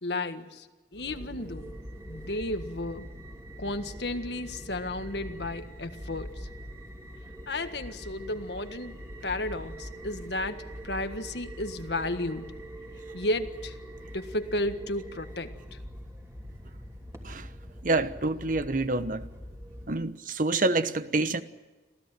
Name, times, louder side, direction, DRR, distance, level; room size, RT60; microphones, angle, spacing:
voice 1, 0.0-0.7 0.9-1.8 2.1-3.1 3.6-6.5 7.5-12.5 13.1-13.8 14.1-15.8, left 1 dB, 70° left, 1.6 m, -33 dB
sound 1, 0.9-19.9, equal, 15° right, 3.1 m, -43 dB
voice 2, 17.8-19.3 19.9-21.4, right 2 dB, 50° right, 1.2 m, -27 dB
27.0 x 16.0 x 9.2 m
head